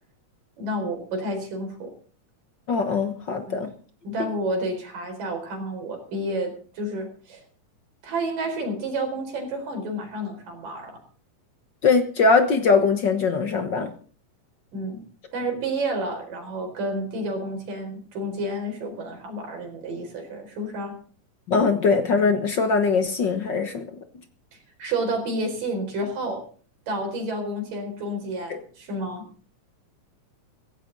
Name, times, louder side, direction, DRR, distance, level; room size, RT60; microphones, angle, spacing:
voice 1, 0.6-1.9 3.4-3.7 4.0-7.4 8.0-11.0 14.7-15.0 15.3-20.9 24.8-26.5 26.9-29.2, right 1 dB, 85° right, 3 dB, 6.1 m, -30 dB
voice 2, 2.7-3.7 4.2-4.3 11.8-13.9 21.5-23.8 28.5-28.6, left 4 dB, 60° left, 7 dB, 1.2 m, -21 dB
16.5 x 16.0 x 4.0 m, 0.42 s
omnidirectional pair, 3.7 m